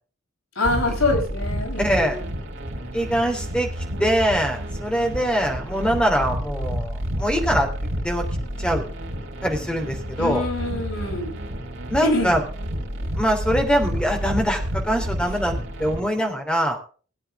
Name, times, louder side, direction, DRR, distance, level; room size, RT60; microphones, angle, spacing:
voice 1, 0.6-2.2 10.2-11.3 12.0-12.3, left 2 dB, 75° left, 1 dB, 5.3 m, -25 dB
sound 1, 0.6-16.0, equal, 60° right, 3.4 m, -30 dB
voice 2, 1.8-2.2 2.9-7.7 8.0-8.2 8.6-8.9 9.4-10.4 11.9-12.4 13.1-15.5 15.8-16.8, equal, 5° left, 2 dB, 3.3 m, -23 dB
19.5 x 9.2 x 3.7 m, 0.39 s
head